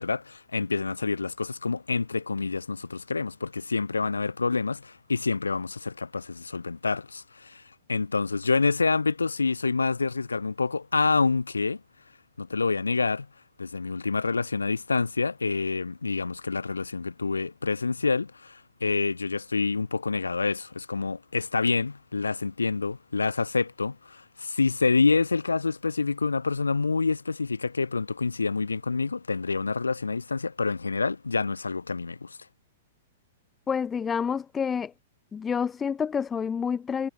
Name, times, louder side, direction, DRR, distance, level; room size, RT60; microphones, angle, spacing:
voice 1, 0.0-7.6 7.9-11.8 12.4-13.3 13.6-32.4, left 4 dB, 80° left, 4.6 m, -27 dB
voice 2, 33.7-34.9 35.3-37.1, left 6 dB, 15° left, 5.0 m, -28 dB
figure-of-eight pair, 105°, 0 cm